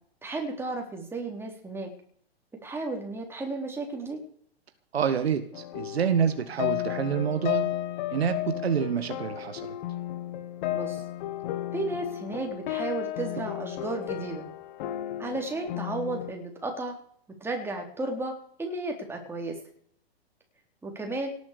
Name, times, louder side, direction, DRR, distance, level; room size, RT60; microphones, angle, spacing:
voice 1, 0.2-1.9 2.6-4.2 10.7-11.0 11.7-14.5 15.2-17.0 17.4-18.3 18.6-19.6 20.8-21.3, right 2 dB, 5° right, 2 dB, 3.9 m, -33 dB
voice 2, 4.9-7.7 8.1-9.8, right 7 dB, 70° right, 9 dB, 1.7 m, -27 dB
sound 1, 5.5-16.3, left 13 dB, 45° left, 1.6 m, -33 dB
18.0 x 8.4 x 6.8 m, 0.63 s
hypercardioid pair, 120°, 32 cm